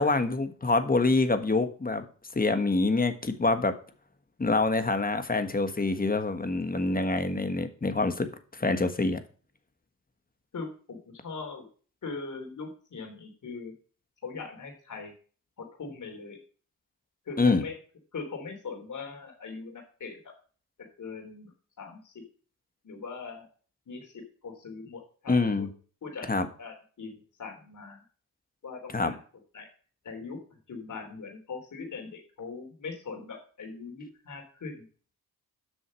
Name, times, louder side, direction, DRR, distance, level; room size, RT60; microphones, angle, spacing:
voice 1, 0.0-2.1 2.3-3.7 4.4-9.2 17.4-17.6 25.3-25.7 26.3-26.5 28.9-29.1, left 3 dB, 25° left, 9 dB, 1.5 m, -26 dB
voice 2, 10.5-11.7 12.0-13.7 14.2-15.1 15.6-16.4 17.2-17.7 18.1-20.3 21.0-22.1 22.8-23.5 23.9-25.7 26.0-26.3 26.6-28.0 28.6-29.2 29.5-29.7 30.0-34.8, left 4 dB, 55° left, 3 dB, 3.4 m, -41 dB
8.1 x 6.2 x 6.3 m, 0.41 s
cardioid pair, 70°, 35 cm